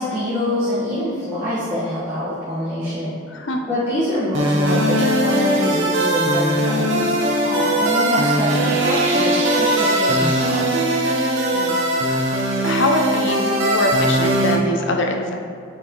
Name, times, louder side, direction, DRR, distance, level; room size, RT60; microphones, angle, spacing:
voice 1, 0.0-3.2 3.7-7.2 7.8-10.8, left 1 dB, 15° right, -13 dB, 1.3 m, -25 dB
sound 1, 4.3-14.6, right 1 dB, 60° right, 0.7 m, -19 dB
voice 2, 7.4-7.8 11.5-12.3 12.5-15.4, left 1 dB, 60° left, 3 dB, 0.6 m, -24 dB
8.2 x 4.4 x 3.0 m, 2.2 s
head